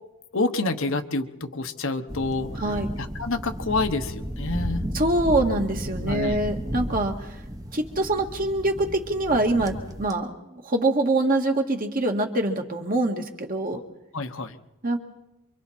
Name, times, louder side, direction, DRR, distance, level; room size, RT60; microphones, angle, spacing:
voice 1, 0.3-2.6 3.0-4.9 6.0-6.4 13.7-13.8 14.1-14.6, left 3 dB, 60° left, 7 dB, 1.2 m, -28 dB
sound 1, 2.1-10.1, equal, 15° right, 1.2 m, -33 dB
voice 2, 2.6-2.9 4.9-7.3 7.7-13.8 14.8-15.0, right 2 dB, 40° right, 3 dB, 2.1 m, -24 dB
28.0 x 24.5 x 4.4 m, 0.93 s
head